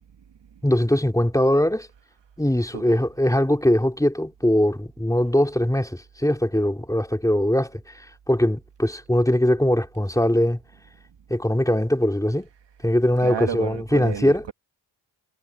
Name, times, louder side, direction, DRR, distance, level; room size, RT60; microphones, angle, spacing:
voice 1, 0.6-1.9 2.4-7.8 8.3-10.6 11.3-12.5 12.8-14.4, left 1 dB, 5° left, 3.2 m, -21 dB
voice 2, 13.2-14.5, right 8 dB, 60° right, 1.8 m, -32 dB
cardioid pair, 70°, 47 cm